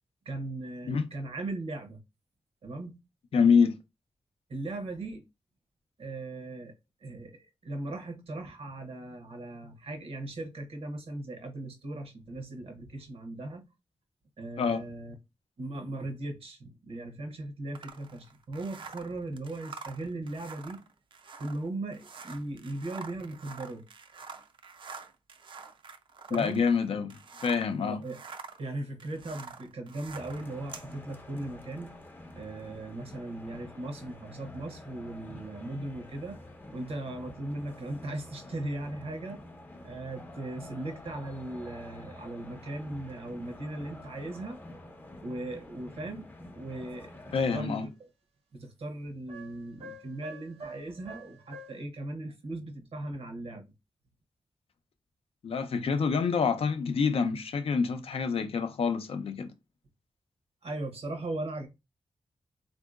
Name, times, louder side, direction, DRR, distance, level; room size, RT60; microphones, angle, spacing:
voice 1, 0.2-2.0 2.6-3.0 4.5-5.2 6.0-6.7 7.0-13.6 14.4-15.1 15.6-20.8 21.4-23.8 26.3-26.6 26.9-27.1 27.8-28.2 28.6-31.9 32.3-36.4 36.7-39.4 39.8-44.6 45.2-46.3 46.5-47.9 48.5-53.6 60.6-61.7, right 2 dB, 75° right, 0.9 m, -38 dB
voice 2, 3.3-3.8 14.6-14.8 26.3-28.0 47.3-47.9 55.4-59.5, left 5 dB, 70° left, 0.4 m, -27 dB
sound 1, 17.7-27.7 28.0-30.9, right 5 dB, 55° right, 0.4 m, -47 dB
sound 2, 30.1-47.6, left 1 dB, 20° left, 0.5 m, -48 dB
sound 3, 47.3-47.7 49.3-51.8, right 3 dB, 90° right, 1.2 m, -48 dB
3.7 x 2.6 x 2.4 m
wide cardioid pair, 115°, 10 cm